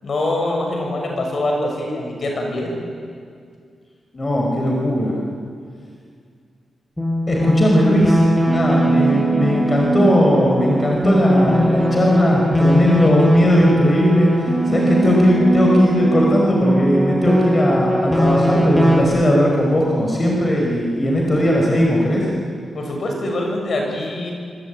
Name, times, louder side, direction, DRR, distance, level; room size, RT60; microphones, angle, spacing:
voice 1, 0.0-2.8 8.8-9.1 22.7-24.3, left 1 dB, 55° left, 1 dB, 7.1 m, -24 dB
voice 2, 4.1-5.1 7.3-8.2 8.5-14.3 14.7-22.3, left 1 dB, 30° left, -1 dB, 5.4 m, -18 dB
sound 1, 7.0-19.0, right 1 dB, 10° left, 7.7 m, -19 dB
25.5 x 24.5 x 9.3 m, 2.2 s
wide cardioid pair, 105°, 0 cm